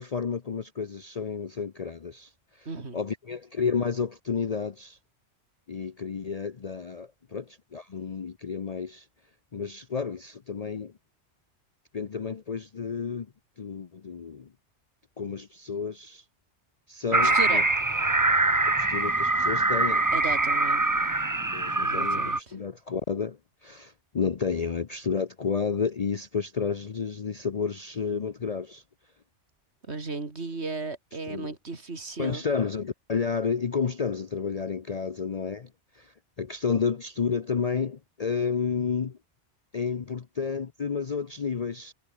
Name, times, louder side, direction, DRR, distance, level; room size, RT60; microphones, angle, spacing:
voice 1, 0.0-2.3 2.6-2.7 2.9-5.0 5.7-9.1 9.5-10.9 11.9-13.3 13.6-14.5 15.2-16.2 16.9-17.6 18.6-20.1 21.5-28.8 31.3-31.5 32.2-35.7 35.9-39.2 39.7-41.9, left 6 dB, 40° left, 0.7 m, -31 dB
voice 2, 2.6-3.0 17.1-17.7 20.1-20.8 21.8-22.6 29.9-32.4, right 3 dB, 65° right, 3.2 m, -35 dB
sound 1, 17.1-22.4, right 2 dB, 15° right, 1.1 m, -24 dB
omnidirectional pair, 1.2 m